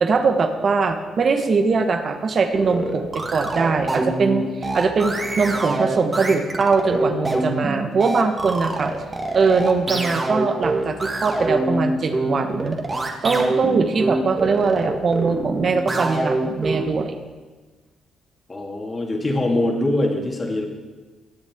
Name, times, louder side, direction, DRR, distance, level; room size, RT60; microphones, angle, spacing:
voice 1, 0.0-8.9 9.3-12.8 13.2-17.1, right 4 dB, 45° right, 6 dB, 1.3 m, -21 dB
sound 1, 2.5-17.0, right 2 dB, 25° right, 1.6 m, -25 dB
voice 2, 18.5-20.7, left 1 dB, 30° left, 1 dB, 2.2 m, -23 dB
21.0 x 7.3 x 3.7 m, 1.3 s
cardioid pair, 90°, 0 cm